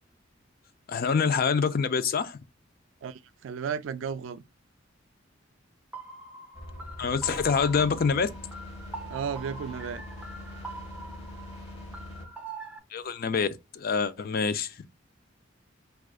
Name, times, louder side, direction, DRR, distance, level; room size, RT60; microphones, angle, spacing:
voice 1, 0.9-2.4 7.0-8.3 12.9-13.5 13.7-14.7, left 5 dB, 45° left, 0.4 m, -26 dB
voice 2, 3.0-4.4 9.1-10.1, right 7 dB, 65° right, 0.3 m, -34 dB
sound 1, 5.9-12.8, right 3 dB, 5° right, 0.6 m, -44 dB
sound 2, 6.5-12.4, left 1 dB, 30° left, 1.1 m, -43 dB
4.7 x 2.3 x 2.3 m
head